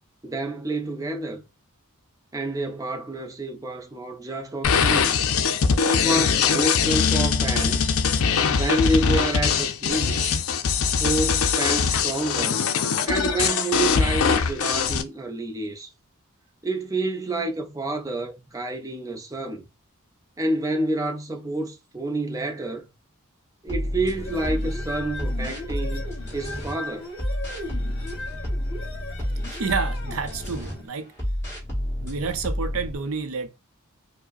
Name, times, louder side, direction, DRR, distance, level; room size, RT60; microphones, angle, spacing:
voice 1, 0.2-1.4 2.3-5.2 5.8-8.0 8.5-10.4 11.0-12.6 13.1-15.9 16.6-19.7 20.4-22.8 23.6-27.1, right 2 dB, 15° right, 0.5 m, -28 dB
sound 1, 4.6-15.0, left 6 dB, 70° left, 0.5 m, -22 dB
sound 2, 23.7-26.7 27.2-30.7 31.2-33.0, equal, 10° left, 1.7 m, -30 dB
sound 3, 24.1-30.9, left 2 dB, 50° left, 1.1 m, -38 dB
voice 2, 29.5-31.1 32.0-33.5, right 5 dB, 70° right, 0.6 m, -29 dB
4.7 x 2.1 x 2.5 m
head